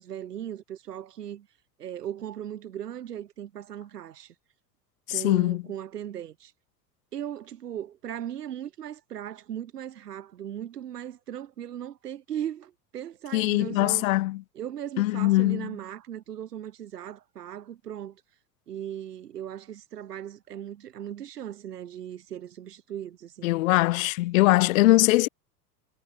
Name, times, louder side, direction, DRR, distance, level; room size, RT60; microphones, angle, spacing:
voice 1, 0.0-1.5 1.8-4.3 5.1-6.5 7.1-14.1 14.6-18.2 18.7-23.5, right 10 dB, 70° right, 3.4 m, -38 dB
voice 2, 5.1-5.6 13.3-14.4 15.0-15.7 23.4-25.3, left 19 dB, 55° left, 0.5 m, -22 dB
figure-of-eight pair, 80°, 49 cm